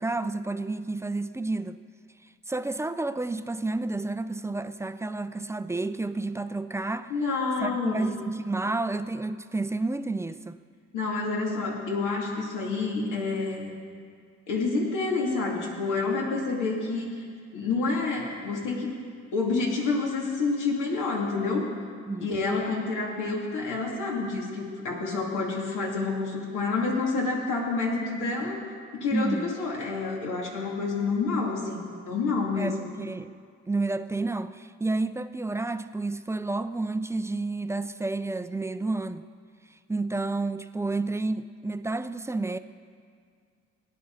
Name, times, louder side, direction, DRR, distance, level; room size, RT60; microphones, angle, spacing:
voice 1, 0.0-1.8 2.5-7.1 7.6-10.6 22.1-22.3 29.1-29.5 32.6-33.3 33.7-39.3 39.9-42.6, right 2 dB, 10° right, 11 dB, 0.4 m, -30 dB
voice 2, 7.1-8.2 10.9-13.7 14.5-17.1 17.5-19.0 19.3-21.7 22.2-28.6 28.9-32.8, left 3 dB, 85° left, -2 dB, 2.6 m, -28 dB
18.0 x 10.0 x 4.0 m, 2.1 s
cardioid pair, 90°, 30 cm